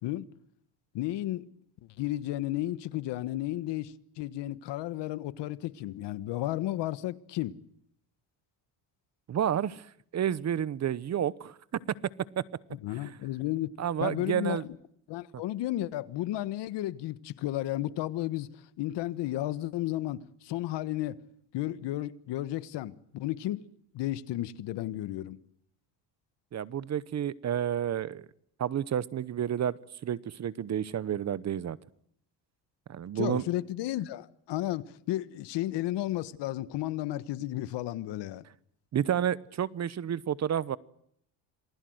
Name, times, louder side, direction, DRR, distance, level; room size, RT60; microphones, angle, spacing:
voice 1, 0.9-1.5 2.0-7.6 12.8-13.7 14.0-14.7 15.1-21.2 21.5-23.6 23.9-25.4 33.1-38.4, left 15 dB, 70° left, 1.4 m, -33 dB
voice 2, 9.3-9.9 10.1-11.6 12.4-12.5 13.0-13.1 13.8-14.6 26.5-28.3 28.6-29.8 30.0-31.8 32.9-33.4 38.9-40.8, right 9 dB, 40° right, 0.9 m, -30 dB
27.5 x 20.0 x 7.9 m
cardioid pair, 125°, 43 cm